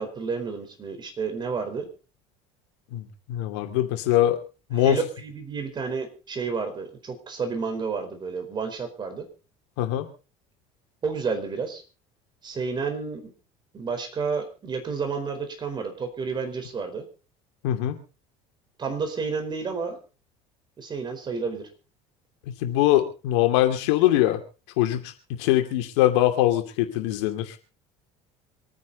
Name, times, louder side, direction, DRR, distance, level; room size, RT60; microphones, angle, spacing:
voice 1, 0.0-1.9 4.8-9.3 11.0-11.8 12.4-13.3 13.7-17.0 18.8-20.0 20.8-21.7, right 5 dB, 30° right, 6 dB, 4.5 m, -30 dB
voice 2, 2.9-4.4 4.7-5.0 9.8-10.1 17.6-18.0 22.5-24.4 24.8-27.6, left 14 dB, 85° left, 7 dB, 2.7 m, -22 dB
25.5 x 9.7 x 4.1 m, 0.34 s
supercardioid pair, 115°, 14 cm